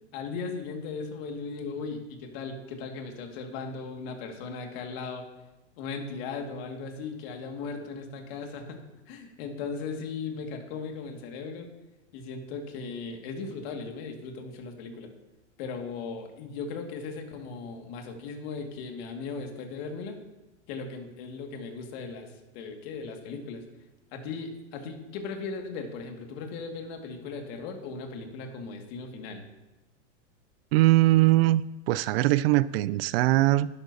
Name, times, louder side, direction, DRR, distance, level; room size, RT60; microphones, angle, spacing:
voice 1, 0.1-5.2 5.8-8.8 9.1-11.7 12.1-15.1 15.6-20.2 20.7-23.6 24.1-29.4, left 4 dB, 55° left, 2.1 m, -37 dB
voice 2, 30.7-31.6 31.9-33.7, right 17 dB, 55° right, 0.4 m, -21 dB
11.0 x 11.0 x 2.8 m
hypercardioid pair, 120°, 37 cm